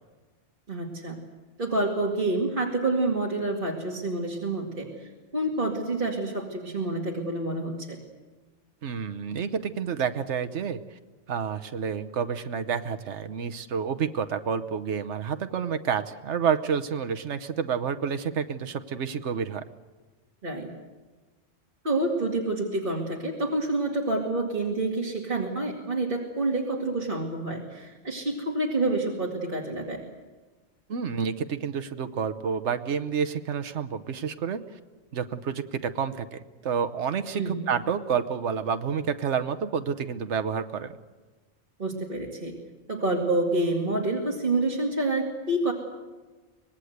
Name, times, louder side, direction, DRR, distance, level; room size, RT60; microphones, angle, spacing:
voice 1, 0.7-1.2 1.6-8.0 20.4-20.7 21.8-30.0 37.3-37.6 41.8-42.6 42.9-45.7, right 2 dB, 45° right, -2 dB, 2.5 m, -28 dB
voice 2, 8.8-10.8 11.3-19.6 30.9-34.6 35.1-40.9, right 7 dB, 80° right, 10 dB, 1.3 m, -29 dB
25.5 x 19.5 x 8.1 m, 1.3 s
omnidirectional pair, 1.2 m